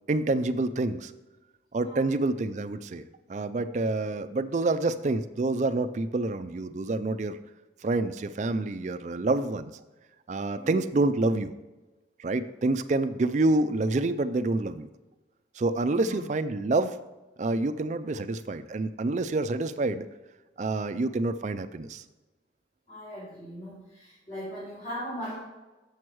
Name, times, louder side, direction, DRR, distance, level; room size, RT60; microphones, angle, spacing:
voice 1, 0.1-1.1 1.7-3.0 3.3-7.4 7.8-9.7 10.3-11.5 12.2-14.9 15.6-17.0 17.4-20.1 20.6-22.0, right 2 dB, 40° right, 10 dB, 0.4 m, -27 dB
voice 2, 10.5-10.8 16.0-16.2 22.9-25.4, equal, 40° left, -11 dB, 2.7 m, -39 dB
7.2 x 6.1 x 4.6 m, 1.1 s
head